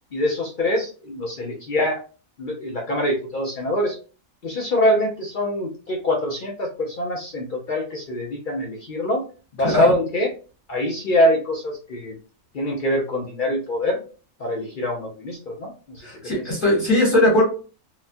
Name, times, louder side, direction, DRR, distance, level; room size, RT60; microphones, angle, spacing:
voice 1, 0.1-2.0 2.4-4.0 4.4-9.2 9.5-10.3 10.7-12.1 12.5-14.0 14.4-16.0 16.4-16.5, left 1 dB, 55° left, -1 dB, 0.5 m, -24 dB
voice 2, 16.0-17.4, left 1 dB, 40° left, -5 dB, 1.3 m, -19 dB
2.8 x 2.2 x 2.5 m, 0.37 s
omnidirectional pair, 1.4 m